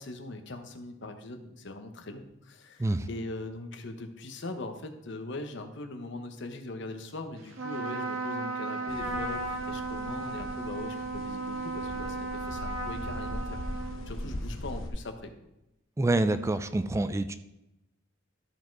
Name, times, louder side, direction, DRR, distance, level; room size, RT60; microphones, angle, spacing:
voice 1, 0.0-13.6 14.1-15.3, left 2 dB, 65° left, 6 dB, 1.1 m, -41 dB
Trumpet, 7.5-14.4, right 3 dB, 90° right, 1.6 m, -35 dB
sound 1, 8.9-14.9, left 1 dB, 90° left, 1.2 m, -40 dB
voice 2, 16.0-17.3, right 2 dB, 15° right, 11 dB, 0.4 m, -27 dB
13.0 x 5.0 x 4.6 m, 0.91 s
head